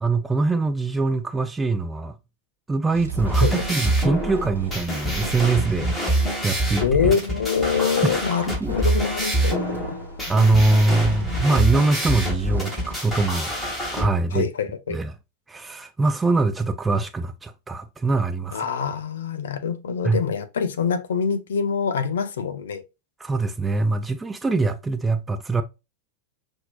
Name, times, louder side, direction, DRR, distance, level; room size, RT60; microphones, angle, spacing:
voice 1, 0.0-2.2 2.7-7.2 8.0-8.2 8.6-8.7 10.3-13.5 13.9-14.5 14.9-15.1 15.5-18.6 20.0-20.2 23.2-25.6, right 3 dB, 10° right, 0.4 m, -23 dB
sound 1, 2.9-13.3, right 5 dB, 75° right, 0.9 m, -38 dB
sound 2, 3.1-14.0, right 1 dB, 5° left, 1.8 m, -26 dB
voice 2, 6.8-10.0 14.3-15.0 18.5-22.8, left 6 dB, 65° left, 0.5 m, -25 dB
5.8 x 2.6 x 2.3 m
figure-of-eight pair, 90°, 0 cm